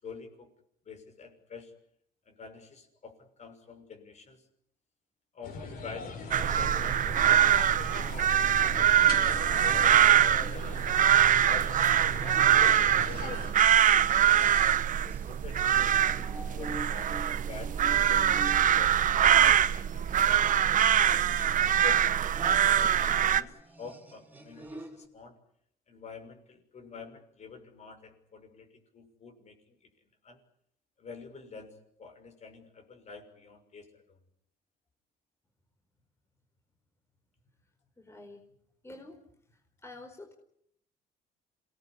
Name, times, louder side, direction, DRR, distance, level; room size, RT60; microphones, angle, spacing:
voice 1, 0.0-0.5 0.8-1.7 2.3-4.4 5.3-8.5 8.7-10.9 11.4-11.7 12.0-14.6 15.0-20.5 20.7-21.2 21.6-25.4 25.9-28.7 28.9-29.9 30.2-30.4 31.0-34.2, left 5 dB, 40° left, 6 dB, 6.3 m, -48 dB
sound 1, 5.4-13.5, left 4 dB, 60° left, 7.8 m, -40 dB
sound 2, 6.3-23.4, right 10 dB, 50° right, 1.0 m, -24 dB
sound 3, 9.1-14.8 15.1-25.1, right 1 dB, 10° right, 4.5 m, -47 dB
voice 2, 38.0-38.4 38.8-39.2 39.5-40.3, left 2 dB, 15° left, 3 dB, 4.5 m, -48 dB
27.0 x 19.0 x 9.9 m, 0.71 s
cardioid pair, 110°, 17 cm